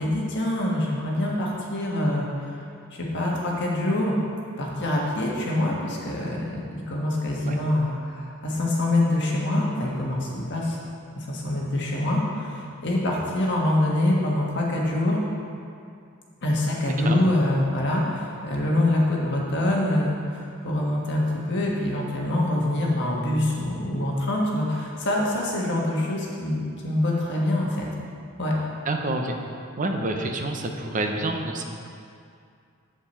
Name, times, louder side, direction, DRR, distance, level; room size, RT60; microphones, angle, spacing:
voice 1, 0.0-2.6 2.9-4.1 4.6-10.8 11.2-15.2 16.4-27.9 28.4-28.5, left 1 dB, 55° left, -3 dB, 1.4 m, -25 dB
voice 2, 16.8-17.3 28.8-29.4 29.8-31.6, right 2 dB, 40° right, 3 dB, 0.7 m, -28 dB
7.6 x 7.1 x 4.4 m, 2.4 s
head